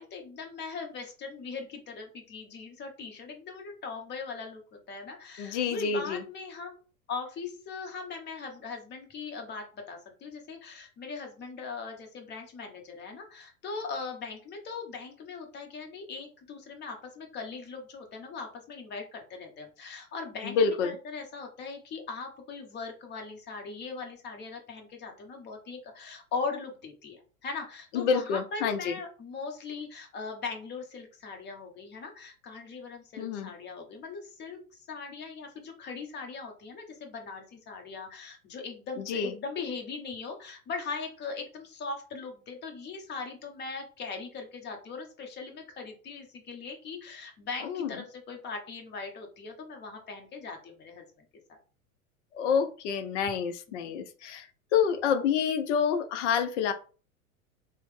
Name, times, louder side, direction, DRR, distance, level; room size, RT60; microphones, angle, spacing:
voice 1, 0.0-6.8 7.1-51.6 53.7-53.9, left 4 dB, 25° left, 3 dB, 0.7 m, -40 dB
voice 2, 5.4-6.2 20.5-20.9 27.9-28.9 33.2-33.5 39.1-39.3 47.7-47.9 52.4-54.5 54.7-56.7, left 6 dB, 55° left, 9 dB, 0.5 m, -27 dB
3.0 x 2.0 x 3.1 m, 0.38 s
hypercardioid pair, 95°, 44 cm